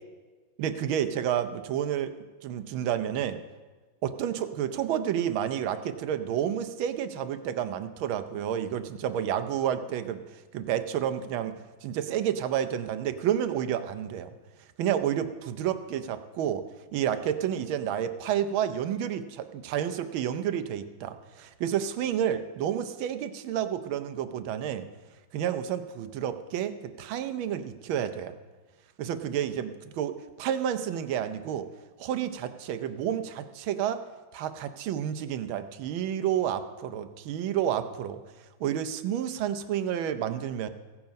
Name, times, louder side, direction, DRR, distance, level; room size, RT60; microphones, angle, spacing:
voice 1, 0.6-2.1 2.4-3.4 4.0-11.5 11.8-14.3 14.8-16.6 16.9-24.9 25.3-28.4 29.0-31.7 32.0-34.0 34.3-38.2 38.6-40.7, right 10 dB, 80° right, 10 dB, 1.5 m, -30 dB
16.0 x 7.2 x 5.2 m, 1.3 s
omnidirectional pair, 2.2 m